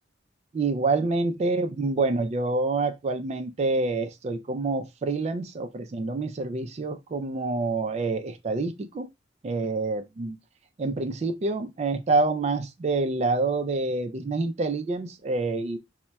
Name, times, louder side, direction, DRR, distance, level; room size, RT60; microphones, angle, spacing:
voice 1, 0.5-9.1 9.4-10.4 10.8-15.8, right 3 dB, 35° right, 0.3 m, -27 dB
3.9 x 2.1 x 2.2 m
head